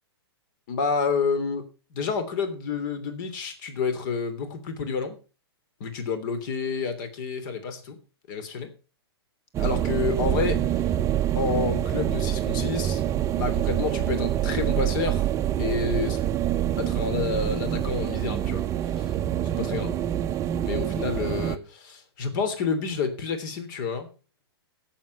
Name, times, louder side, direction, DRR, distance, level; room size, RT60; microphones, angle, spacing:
voice 1, 0.7-5.2 5.8-8.0 8.3-8.7 9.6-10.6 11.3-13.0 13.3-15.3 15.6-16.2 16.8-18.6 18.9-19.1 19.4-19.9 20.6-24.1, left 5 dB, 50° left, 10 dB, 3.2 m, -29 dB
sound 1, 9.5-21.6, right 11 dB, 20° right, 0.7 m, -26 dB
16.5 x 7.6 x 5.6 m, 0.34 s
hypercardioid pair, 130°, 13 cm